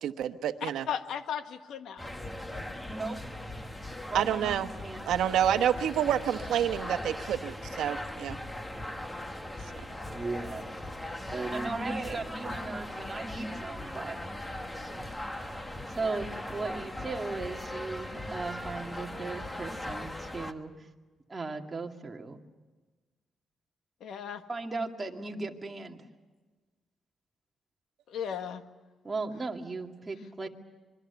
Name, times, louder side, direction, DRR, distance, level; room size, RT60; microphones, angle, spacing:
voice 1, 0.0-0.9 4.1-4.7 5.1-8.4, right 10 dB, 85° right, 8 dB, 1.1 m, -28 dB
voice 2, 0.6-2.1 24.0-24.4 28.1-28.6, left 8 dB, 75° left, 8 dB, 1.6 m, -36 dB
sound 1, 2.0-20.5, left 1 dB, 10° left, 1.4 m, -39 dB
voice 3, 2.9-3.2 4.1-5.0 10.1-10.7 11.3-14.2 16.0-20.9 21.3-22.4 24.5-26.0 29.0-30.5, right 3 dB, 20° right, 2 dB, 2.3 m, -36 dB
26.5 x 23.0 x 7.0 m, 1.3 s
cardioid pair, 120°, 0 cm